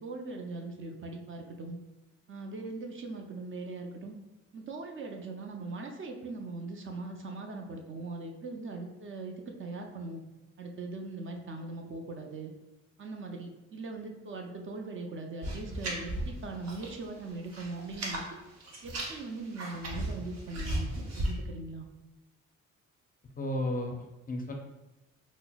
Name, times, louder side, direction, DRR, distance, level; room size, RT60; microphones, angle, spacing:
voice 1, 0.0-1.8 2.3-4.2 4.5-10.2 10.6-12.5 13.0-18.4 18.8-21.9, right 3 dB, 40° right, 3 dB, 0.5 m, -40 dB
sound 1, 15.4-17.0 17.3-18.2 18.6-21.3, right 1 dB, 60° right, 0.8 m, -35 dB
voice 2, 23.4-24.5, left 1 dB, 30° left, 3 dB, 0.5 m, -33 dB
5.5 x 2.0 x 2.3 m, 1.0 s
cardioid pair, 90°, 30 cm